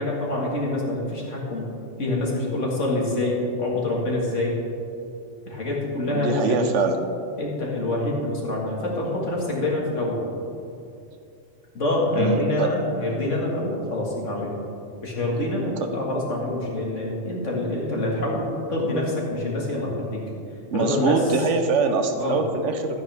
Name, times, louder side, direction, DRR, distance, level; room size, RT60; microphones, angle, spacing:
voice 1, 0.0-1.7 2.0-4.5 5.5-6.6 7.4-10.2 11.7-14.6 15.0-20.2 20.7-21.2 22.2-22.4, left 1 dB, 75° left, -3 dB, 2.3 m, -26 dB
voice 2, 6.1-7.0 12.1-12.8 20.7-23.0, right 4 dB, 75° right, 6 dB, 1.1 m, -23 dB
13.0 x 9.6 x 3.4 m, 2.6 s
omnidirectional pair, 1.3 m